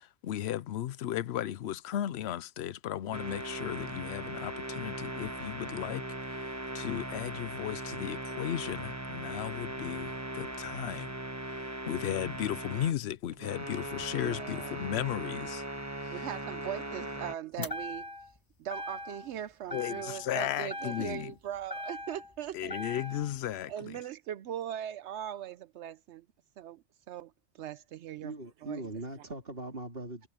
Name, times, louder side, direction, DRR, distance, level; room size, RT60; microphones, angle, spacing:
voice 1, 0.0-11.1 11.5-15.7 16.0-16.3 17.6-17.7 19.7-21.3 22.5-23.9, left 11 dB, 70° left, 0.9 m, -35 dB
sound 1, 3.1-13.0 13.3-17.4, right 1 dB, 15° right, 1.2 m, -39 dB
voice 2, 14.2-14.8 16.1-18.0 18.6-22.8 23.7-26.2 26.6-28.3 28.6-28.8, right 11 dB, 80° right, 0.9 m, -40 dB
sound 2, 17.6-18.4 18.7-19.4 19.7-20.4 20.7-22.3 22.7-23.3, left 1 dB, 20° left, 1.4 m, -40 dB
voice 3, 28.2-30.3, right 2 dB, 55° right, 3.6 m, -40 dB
omnidirectional pair, 1.2 m